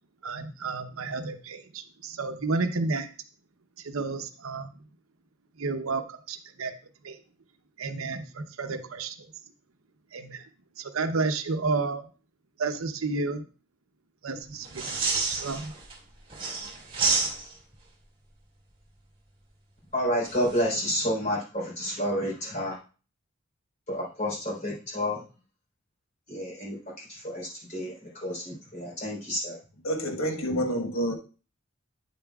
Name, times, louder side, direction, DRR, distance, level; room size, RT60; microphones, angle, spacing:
voice 1, 0.2-3.1 3.8-4.7 5.6-6.7 7.0-7.2 7.8-9.1 10.1-10.4 10.8-12.0 12.6-13.5 14.2-15.0 15.2-15.7, right 3 dB, 80° right, 8 dB, 0.8 m, -31 dB
sound 1, 14.7-15.9 16.3-17.7 20.2-20.6, right 4 dB, 25° right, 2.0 m, -29 dB
voice 2, 19.9-22.8 23.9-25.2 26.3-29.6, equal, 35° left, -5 dB, 3.6 m, -30 dB
voice 3, 29.8-31.1, equal, 80° left, 2 dB, 1.3 m, -28 dB
9.0 x 7.0 x 2.3 m, 0.36 s
head